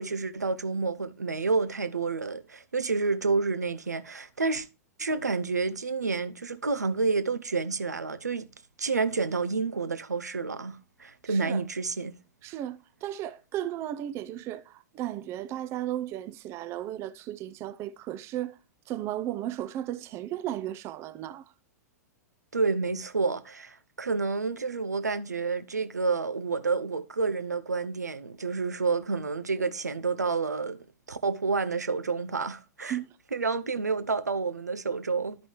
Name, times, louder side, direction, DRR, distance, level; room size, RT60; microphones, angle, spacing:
voice 1, 0.0-4.7 5.0-8.5 8.8-12.1 22.5-30.8 31.1-33.0 33.3-35.4, right 4 dB, 80° right, 0.6 m, -29 dB
voice 2, 11.2-11.6 12.4-18.6 18.9-21.5 32.9-33.2, right 12 dB, 30° right, 0.5 m, -35 dB
11.5 x 5.3 x 3.0 m
figure-of-eight pair, 100°, 9 cm